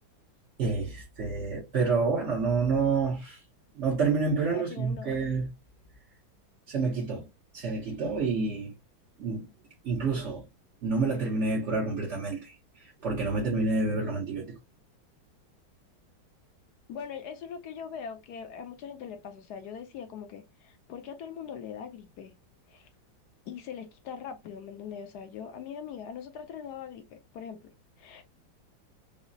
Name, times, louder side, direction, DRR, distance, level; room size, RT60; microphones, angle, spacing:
voice 1, 0.6-3.4 3.7-5.5 6.7-7.3 7.5-8.7 9.2-9.5 9.8-10.4 10.8-14.6, right 4 dB, 55° right, 0.8 m, -28 dB
voice 2, 4.5-5.2 16.9-22.3 22.7-22.9 23.5-27.6 28.0-28.2, left 7 dB, 70° left, 1.1 m, -41 dB
4.8 x 2.0 x 2.6 m
omnidirectional pair, 2.1 m